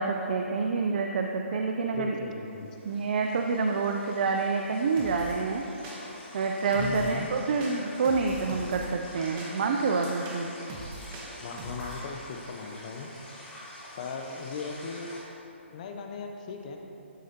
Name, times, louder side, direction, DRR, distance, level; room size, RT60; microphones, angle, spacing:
voice 1, 0.0-2.1 2.8-5.7 6.3-10.5, right 4 dB, 50° right, 3 dB, 0.4 m, -27 dB
voice 2, 1.9-2.7 6.8-7.3 11.4-13.1 14.0-15.2 15.7-16.8, left 5 dB, 35° left, 3 dB, 0.7 m, -38 dB
sound 1, 2.5-15.2, left 1 dB, 10° left, 1.5 m, -46 dB
sound 2, 5.0-5.4 5.8-6.3 6.7-7.2 7.6-8.9 9.4-12.0, right 2 dB, 20° right, 0.9 m, -42 dB
12.0 x 4.8 x 2.8 m, 2.9 s
hypercardioid pair, 155°, 7 cm